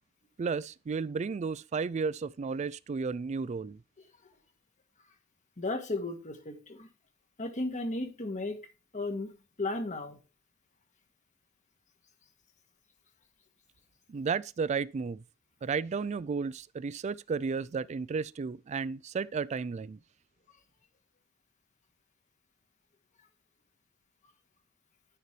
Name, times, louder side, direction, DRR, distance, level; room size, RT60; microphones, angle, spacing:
voice 1, 0.4-3.8 14.1-15.2 15.6-20.0, right 5 dB, 35° right, 0.3 m, -33 dB
voice 2, 5.6-6.9 7.4-8.6 8.9-9.3 9.6-10.2, left 2 dB, 35° left, 1.5 m, -34 dB
10.5 x 6.6 x 3.2 m
head